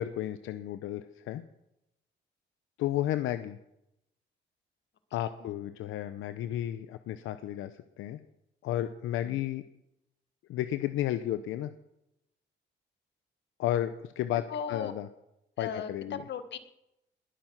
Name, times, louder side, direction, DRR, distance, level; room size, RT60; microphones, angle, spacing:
voice 1, 0.0-1.4 2.8-3.6 5.1-8.2 8.6-9.6 10.5-11.7 13.6-15.1 15.6-16.2, left 12 dB, 85° left, 11 dB, 0.7 m, -33 dB
voice 2, 14.5-14.9 15.6-16.6, left 7 dB, 60° left, 10 dB, 1.6 m, -37 dB
20.5 x 9.1 x 5.9 m, 0.85 s
cardioid pair, 90°, 20 cm